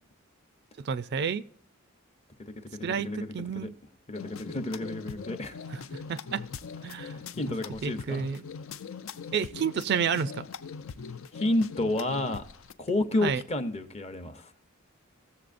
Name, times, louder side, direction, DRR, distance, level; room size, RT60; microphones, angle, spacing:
voice 1, 0.8-1.4 2.8-3.7 5.9-6.4 6.8-7.1 7.8-8.4 9.3-10.4 13.2-13.4, right 6 dB, 50° right, 0.4 m, -30 dB
voice 2, 2.4-3.7 4.1-5.6 6.9-8.3 11.3-12.4 12.8-14.5, left 2 dB, 30° left, 0.7 m, -31 dB
sound 1, 4.1-12.7, left 6 dB, 70° left, 0.5 m, -41 dB
17.0 x 7.0 x 2.5 m
head